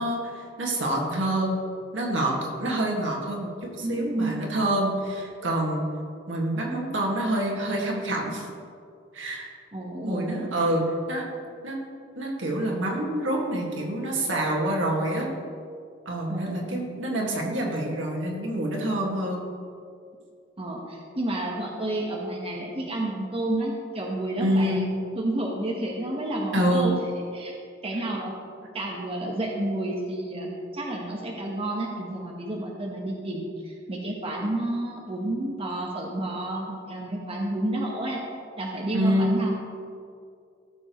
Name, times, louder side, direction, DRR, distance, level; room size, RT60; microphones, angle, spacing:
voice 1, 0.0-1.6 1.9-5.8 6.3-8.5 9.1-9.5 10.0-10.8 11.1-11.3 11.6-11.8 12.2-15.3 16.1-19.5 24.4-24.9 26.5-27.0 38.9-39.4, right 1 dB, 75° right, -2 dB, 1.9 m, -27 dB
voice 2, 3.8-4.5 9.7-10.5 16.3-16.9 20.6-24.9 25.1-27.0 27.3-27.5 27.8-28.3 28.7-38.2 38.6-39.5, right 1 dB, 30° right, -2 dB, 1.1 m, -30 dB
16.0 x 7.1 x 3.1 m, 2.3 s
head